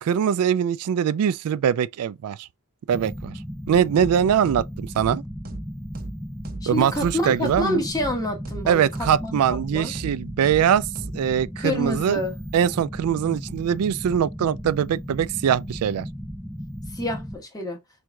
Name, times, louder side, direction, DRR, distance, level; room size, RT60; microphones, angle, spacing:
voice 1, 0.0-2.5 2.9-3.3 3.7-5.2 6.7-7.8 8.7-10.9 11.1-12.2 12.5-16.1, right 8 dB, 80° right, 0.3 m, -22 dB
sound 1, 2.9-17.4, equal, ahead, 0.4 m, -36 dB
sound 2, 3.9-4.1 4.4-4.6 4.9-5.1 5.4-5.6 5.9-6.1 6.4-6.6 6.9-7.1 7.4-7.6 7.9-8.1 8.4-8.6 8.9-9.1 9.4-9.6 9.9-10.1 10.4-10.6 10.9-11.1, right 2 dB, 40° right, 0.7 m, -35 dB
voice 2, 6.6-9.9 11.6-12.4 16.9-17.8, left 1 dB, 15° left, 1.1 m, -28 dB
4.6 x 3.6 x 2.2 m
head